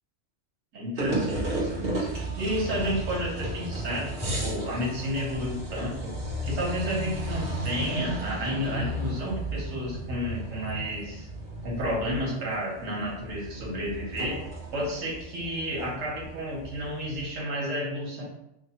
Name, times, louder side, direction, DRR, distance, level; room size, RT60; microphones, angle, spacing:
voice 1, 0.7-6.1 6.4-11.3 11.6-14.4 14.7-18.2, equal, 85° right, -3 dB, 1.4 m, -31 dB
sound 1, 1.0-17.3, right 2 dB, 50° right, 1.3 m, -34 dB
3.5 x 2.2 x 4.2 m, 0.83 s
omnidirectional pair, 1.3 m